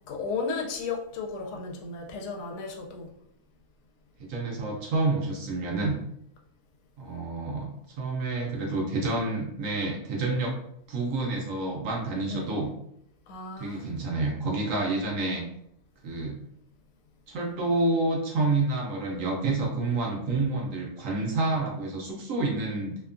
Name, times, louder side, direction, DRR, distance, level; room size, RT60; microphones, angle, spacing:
voice 1, 0.1-3.1 12.3-12.6 13.3-13.9, left 4 dB, 80° left, 1 dB, 1.1 m, -34 dB
voice 2, 4.3-6.0 7.0-10.5 10.9-12.7 13.6-15.4 16.0-16.4 17.3-23.0, right 2 dB, 70° right, -1 dB, 0.9 m, -28 dB
2.8 x 2.2 x 2.4 m, 0.71 s
omnidirectional pair, 1.7 m